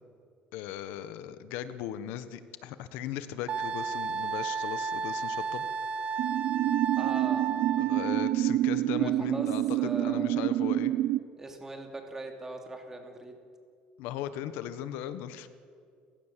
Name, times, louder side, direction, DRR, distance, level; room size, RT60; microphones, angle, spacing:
voice 1, 0.5-5.6 7.8-10.9 14.0-15.5, left 11 dB, 75° left, 12 dB, 1.3 m, -38 dB
Wind instrument woodwind instrument, 3.5-8.3, right 6 dB, 35° right, 1.2 m, -33 dB
sound 1, 6.2-11.2, right 14 dB, 60° right, 0.6 m, -27 dB
voice 2, 7.0-7.5 8.9-9.5 9.7-10.4 11.4-13.4, right 2 dB, 10° right, 3 dB, 2.9 m, -40 dB
29.5 x 16.5 x 7.6 m, 2.3 s
cardioid pair, 160°, 3 cm